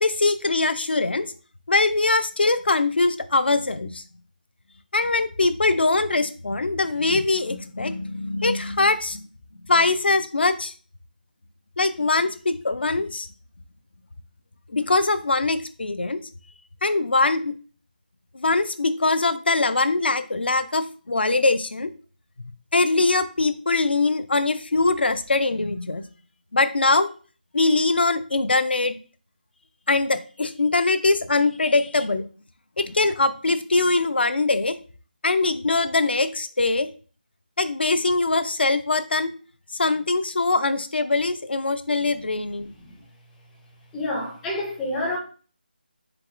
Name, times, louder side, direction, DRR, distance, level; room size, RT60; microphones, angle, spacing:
voice 1, 0.0-1.3 1.7-4.0 4.9-9.3 9.7-10.7 11.8-13.3 14.7-16.2 16.8-17.5 18.3-21.9 22.4-26.0 26.5-27.1 27.5-29.0 29.9-32.3 32.8-34.8 35.2-36.9 37.6-39.3 39.8-42.7, left 3 dB, 85° left, 0.5 m, -22 dB
voice 2, 43.9-45.2, left 1 dB, 5° left, 0.4 m, -28 dB
4.6 x 3.6 x 2.5 m
figure-of-eight pair, 175°, 5 cm